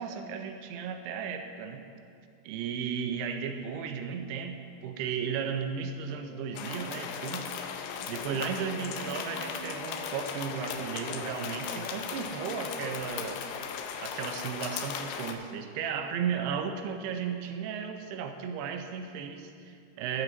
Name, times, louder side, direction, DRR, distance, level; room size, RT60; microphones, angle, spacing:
voice 1, 0.0-1.8 2.4-7.5 8.1-13.4 14.0-20.2, right 7 dB, 85° right, 6 dB, 2.8 m, -35 dB
sound 1, 6.1-14.7, equal, 55° left, 1.9 m, -48 dB
sound 2, 6.5-15.3, left 7 dB, 80° left, 2.4 m, -37 dB
13.5 x 11.0 x 4.0 m, 2.4 s
omnidirectional pair, 4.7 m